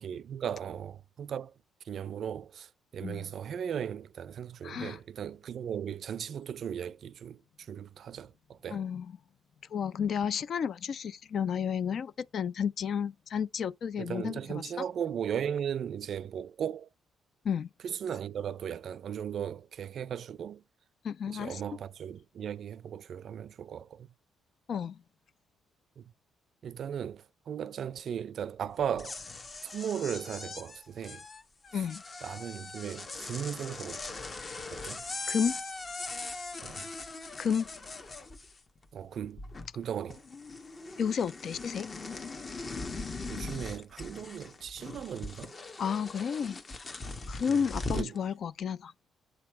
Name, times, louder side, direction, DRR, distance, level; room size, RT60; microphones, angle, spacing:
voice 1, 0.0-1.5 1.8-8.8 14.0-16.9 17.8-20.6 21.3-24.1 26.0-26.1 26.6-29.2 29.6-31.3 31.7-31.9 32.2-34.2 34.7-35.0 36.6-36.9 38.9-39.5 39.7-40.2 43.3-45.5 47.5-48.2, right 8 dB, 60° right, 0.4 m, -37 dB
voice 2, 4.6-5.0 8.7-9.1 9.7-14.6 17.4-17.7 21.0-21.6 24.7-25.0 31.7-32.0 35.3-35.6 37.4-37.7 41.0-41.9 45.8-46.6 47.3-48.9, left 7 dB, 60° left, 0.4 m, -32 dB
sound 1, 28.8-38.8 39.1-39.8 40.1-48.2, left 3 dB, 35° left, 1.0 m, -40 dB
7.8 x 2.9 x 4.5 m
cardioid pair, 90°, 0 cm